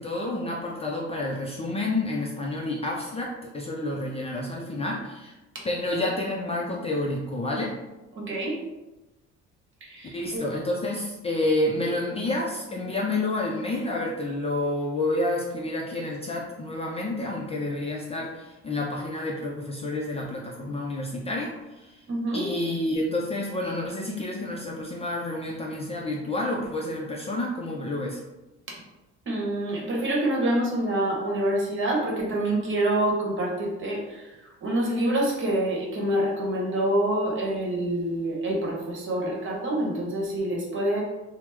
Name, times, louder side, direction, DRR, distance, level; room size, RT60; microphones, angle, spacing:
voice 1, 0.0-5.3 5.6-7.7 10.1-22.0 22.3-28.2, left 2 dB, 20° left, -2 dB, 0.4 m, -29 dB
voice 2, 8.1-8.6 9.8-10.4 22.1-22.5 29.3-41.0, right 1 dB, 40° right, -3 dB, 1.0 m, -26 dB
3.0 x 2.0 x 3.3 m, 1.0 s
cardioid pair, 105°, 29 cm